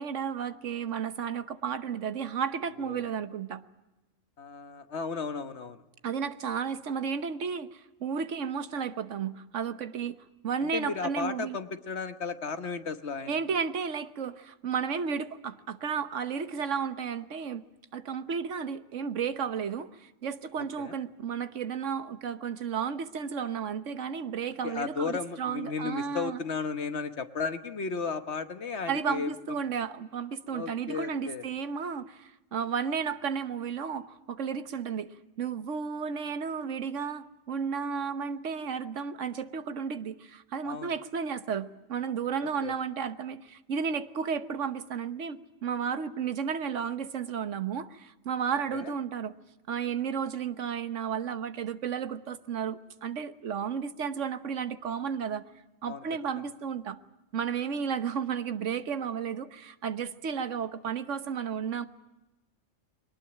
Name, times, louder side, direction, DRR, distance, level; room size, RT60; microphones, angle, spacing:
voice 1, 0.0-3.6 6.0-10.2 10.4-11.6 13.3-17.6 17.9-26.4 28.9-49.4 49.7-55.4 55.8-57.0 57.3-61.9, right 6 dB, 70° right, 11 dB, 1.4 m, -33 dB
voice 2, 4.4-5.8 10.6-13.4 20.6-21.0 24.6-29.6 30.5-31.4 40.6-40.9 42.4-42.7 48.7-48.9 55.9-56.0, left 5 dB, 60° left, 10 dB, 1.5 m, -34 dB
22.5 x 19.0 x 8.7 m, 1.0 s
omnidirectional pair, 1.3 m